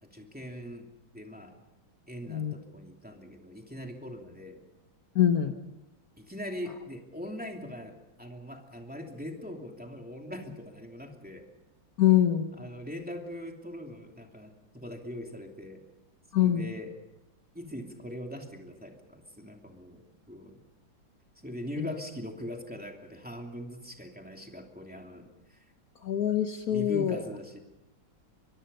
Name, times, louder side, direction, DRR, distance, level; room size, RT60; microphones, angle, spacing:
voice 1, 0.0-0.9 1.1-1.5 2.1-4.7 6.2-11.5 12.5-15.8 16.4-16.9 17.5-20.6 21.4-25.6 26.7-27.6, left 1 dB, 5° right, 2 dB, 2.7 m, -41 dB
voice 2, 5.1-5.5 12.0-12.5 16.3-16.7 26.0-27.2, left 11 dB, 55° left, 6 dB, 1.5 m, -24 dB
23.5 x 23.0 x 5.5 m, 0.95 s
omnidirectional pair, 2.0 m